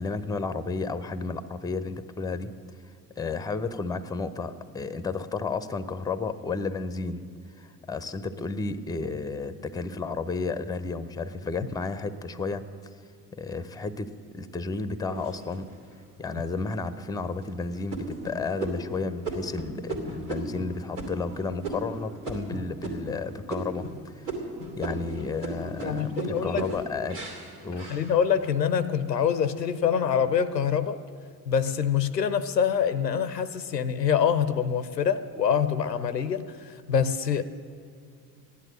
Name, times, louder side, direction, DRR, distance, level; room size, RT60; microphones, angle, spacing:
voice 1, 0.0-2.5 3.2-7.2 7.6-12.7 13.4-15.7 16.2-24.3 24.8-27.3 27.6-28.0, left 4 dB, 10° left, 13 dB, 0.7 m, -32 dB
sound 1, 15.1-15.9 16.5-16.6 17.1-17.4 17.9-23.2 23.5-24.0 24.3-28.6 29.1-29.6, right 2 dB, 75° right, 2.7 m, -36 dB
voice 2, 25.8-26.7 27.9-31.0 31.5-37.4, left 7 dB, 90° left, 13 dB, 0.6 m, -25 dB
15.0 x 11.0 x 7.6 m, 2.3 s
figure-of-eight pair, 55°, 48 cm